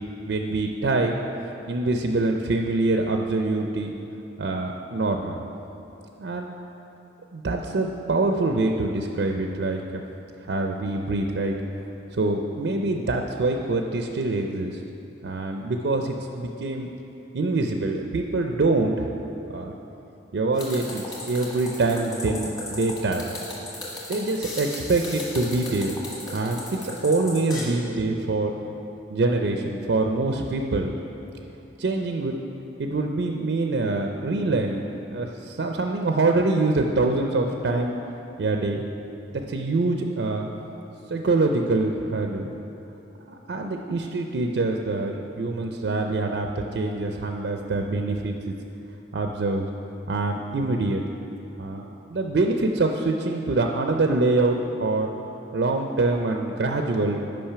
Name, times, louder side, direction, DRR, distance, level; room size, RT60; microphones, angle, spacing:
voice 1, 0.3-1.2 1.7-3.9 4.4-5.4 6.2-6.5 7.3-10.0 10.5-11.6 12.1-14.8 15.2-16.9 17.3-19.1 19.5-19.7 20.3-23.3 24.1-25.9 26.3-28.5 29.1-30.9 31.8-32.3 32.8-34.8 35.1-38.0 38.4-38.8 39.3-40.5 41.1-42.5 43.3-48.5 49.1-49.7 50.1-51.0 51.6-55.1 55.5-57.2, right 2 dB, 60° right, 3 dB, 0.4 m, -25 dB
sound 1, 20.5-27.6, left 1 dB, 20° left, 1.4 m, -36 dB
8.7 x 5.3 x 5.6 m, 3.0 s
head